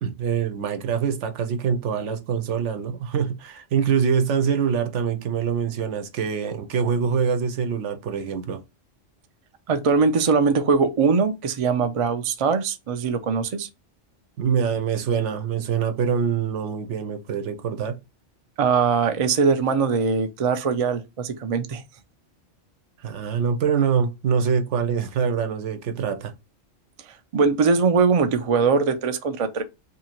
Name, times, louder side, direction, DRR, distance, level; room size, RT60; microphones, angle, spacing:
voice 1, 0.0-8.6 14.4-18.0 23.0-26.3, right 7 dB, 80° right, 1.0 m, -24 dB
voice 2, 9.7-13.7 18.6-21.8 27.3-29.6, right 5 dB, 50° right, 0.4 m, -21 dB
2.8 x 2.8 x 4.3 m
omnidirectional pair, 1.2 m